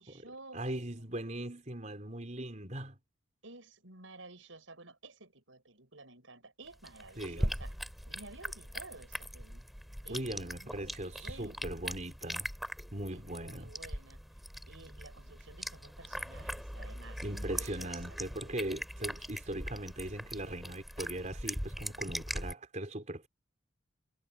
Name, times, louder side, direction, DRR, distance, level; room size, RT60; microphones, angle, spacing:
voice 1, 0.0-0.6 1.0-1.1 3.4-7.7 8.1-9.6 10.0-11.8 13.1-14.2 14.7-17.9, right 2 dB, 80° right, 5.8 m, -53 dB
voice 2, 0.5-3.0 7.2-7.5 10.1-12.5 12.9-13.7 17.2-23.3, right 1 dB, 40° right, 4.2 m, -39 dB
sound 1, 6.7-22.5, equal, ahead, 3.5 m, -41 dB
head